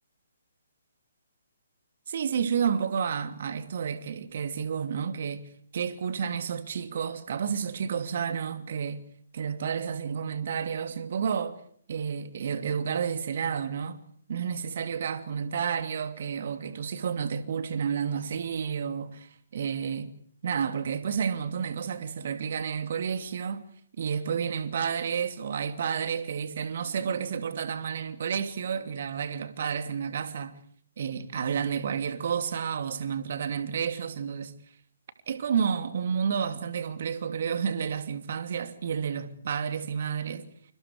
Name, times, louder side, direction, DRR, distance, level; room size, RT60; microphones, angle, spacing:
voice 1, 2.1-5.5 5.7-9.0 9.3-11.6 11.9-14.0 14.3-20.1 20.4-23.6 24.0-30.6 31.0-34.5 35.3-40.5, right 7 dB, 50° right, 2.8 m, -30 dB
29.5 x 28.5 x 5.0 m
figure-of-eight pair, 135°, 0 cm